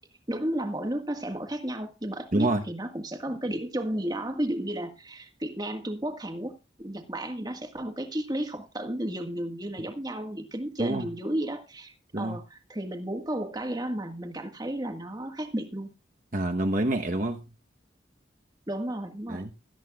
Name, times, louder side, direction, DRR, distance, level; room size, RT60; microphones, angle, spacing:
voice 1, 0.3-15.9 18.7-19.4, right 1 dB, 20° right, 1.7 m, -33 dB
voice 2, 2.3-2.6 10.8-11.1 12.1-12.4 16.3-17.4 19.3-19.5, right 1 dB, 40° right, 1.1 m, -27 dB
17.0 x 13.5 x 2.4 m
head